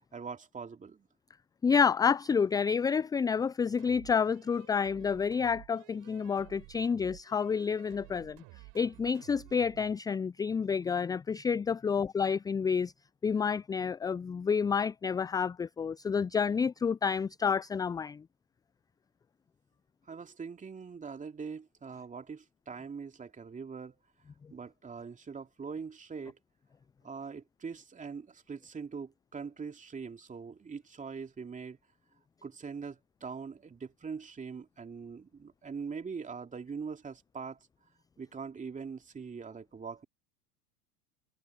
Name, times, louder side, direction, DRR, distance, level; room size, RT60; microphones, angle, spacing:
voice 1, 0.1-1.1 20.1-24.0 24.5-26.4 27.0-31.8 32.4-37.6 38.2-40.1, right 5 dB, 15° right, 2.7 m, -42 dB
voice 2, 1.6-8.4 8.7-12.9 13.2-18.2, left 6 dB, 10° left, 0.5 m, -29 dB
sound 1, 3.8-10.0, right 28 dB, 50° right, 4.1 m, -54 dB
figure-of-eight pair, 90°, 46 cm